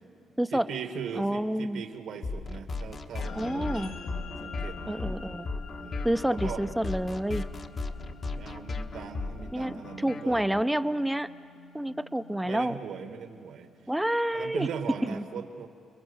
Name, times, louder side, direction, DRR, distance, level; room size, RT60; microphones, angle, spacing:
voice 1, 0.5-3.9 4.4-5.1 5.8-6.6 8.3-10.5 12.4-13.7 14.3-15.7, right 7 dB, 75° right, 6 dB, 2.1 m, -39 dB
voice 2, 1.2-1.8 3.4-3.9 4.9-5.5 6.0-7.5 9.5-11.3 11.7-12.7 13.9-14.7 15.0-15.3, right 1 dB, 5° right, 12 dB, 0.7 m, -28 dB
sound 1, 2.2-10.6, left 3 dB, 45° left, 1.3 m, -36 dB
sound 2, 3.2-13.8, left 5 dB, 75° left, 2.1 m, -48 dB
29.5 x 22.0 x 7.3 m, 2.3 s
cardioid pair, 90°, 0 cm